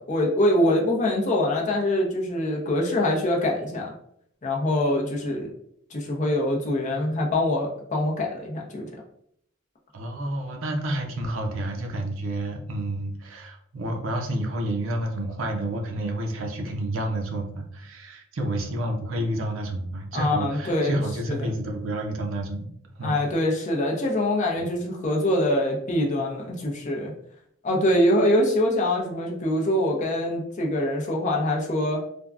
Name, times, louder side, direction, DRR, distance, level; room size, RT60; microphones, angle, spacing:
voice 1, 0.0-3.9 4.4-5.5 5.9-8.9 20.1-21.0 21.2-21.5 23.0-27.1 27.6-32.0, left 1 dB, 35° left, -1 dB, 0.6 m, -24 dB
voice 2, 9.9-22.7 23.0-23.2 24.6-24.7, right 1 dB, 75° right, 3 dB, 0.5 m, -29 dB
3.4 x 2.1 x 2.3 m, 0.70 s
head